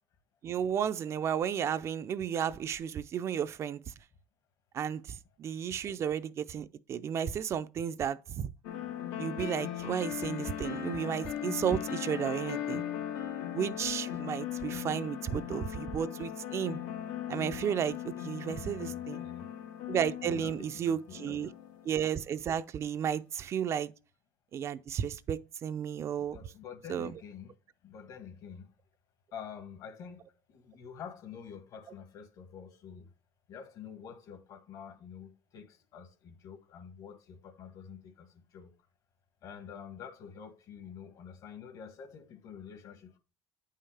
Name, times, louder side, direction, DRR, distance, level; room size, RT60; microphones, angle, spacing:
voice 1, 0.4-3.8 4.7-8.5 9.2-12.8 13.5-16.8 17.3-19.2 19.9-21.5 21.8-23.9 24.5-26.4 26.9-27.1, right 8 dB, 40° right, 0.5 m, -33 dB
sound 1, 8.6-22.2, left 10 dB, 80° left, 1.5 m, -38 dB
voice 2, 18.4-19.5 20.2-21.0 21.3-21.4 26.3-27.5 27.8-28.7 29.3-33.1 33.5-38.7 39.4-43.2, left 7 dB, 55° left, 1.6 m, -47 dB
9.3 x 5.6 x 3.4 m
cardioid pair, 130°, 7 cm